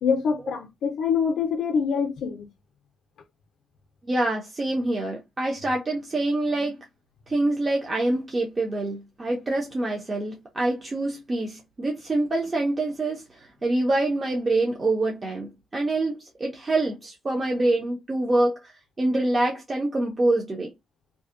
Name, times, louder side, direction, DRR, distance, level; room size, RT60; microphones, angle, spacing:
voice 1, 0.0-2.5, left 6 dB, 65° left, 0.4 m, -25 dB
voice 2, 4.1-6.8 7.3-20.7, right 2 dB, 20° right, 0.5 m, -26 dB
2.6 x 2.0 x 2.4 m
wide cardioid pair, 180°, 0 cm